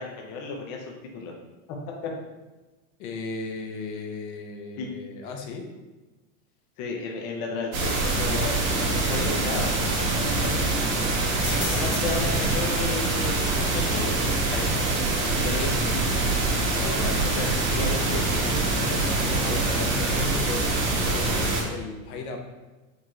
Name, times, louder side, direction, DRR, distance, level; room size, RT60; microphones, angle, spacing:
voice 1, 0.0-1.3 2.0-2.1 4.8-4.9 6.8-9.7 10.1-10.7 11.5-14.7 15.4-16.2 16.7-18.9, left 4 dB, 40° left, 0 dB, 0.6 m, -34 dB
voice 2, 3.0-5.7 12.0-12.6 16.7-17.4 18.8-22.4, left 4 dB, 80° left, 3 dB, 0.8 m, -36 dB
sound 1, 7.7-21.6, right 2 dB, 75° right, 1.3 m, -25 dB
sound 2, 9.4-20.0, left 1 dB, 20° left, 1.5 m, -43 dB
4.5 x 3.0 x 2.9 m, 1.1 s
supercardioid pair, 150°, 41 cm